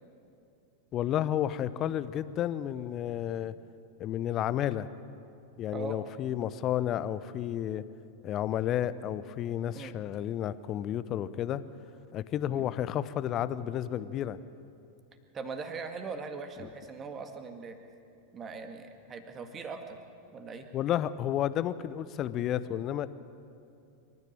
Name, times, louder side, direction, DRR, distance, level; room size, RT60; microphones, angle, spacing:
voice 1, 0.9-3.5 4.0-4.9 5.6-7.8 8.2-11.6 12.1-14.4 16.6-16.7 20.7-23.1, left 11 dB, 35° left, 16 dB, 0.7 m, -31 dB
voice 2, 15.3-17.8 18.3-20.0 20.3-20.7, right 4 dB, 25° right, 6 dB, 2.0 m, -40 dB
25.5 x 13.5 x 8.7 m, 2.6 s
figure-of-eight pair, 90°, 0 cm